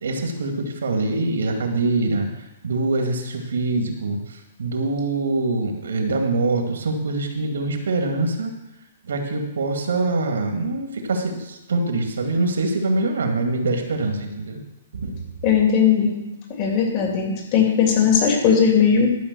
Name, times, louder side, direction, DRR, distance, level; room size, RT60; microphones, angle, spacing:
voice 1, 0.0-2.3 2.6-8.5 9.1-14.6 14.9-15.2, right 2 dB, 80° right, 4 dB, 2.2 m, -24 dB
voice 2, 15.4-16.2 16.6-19.1, left 7 dB, 40° left, 0 dB, 3.0 m, -18 dB
12.5 x 5.4 x 6.9 m, 0.94 s
hypercardioid pair, 140°, 0 cm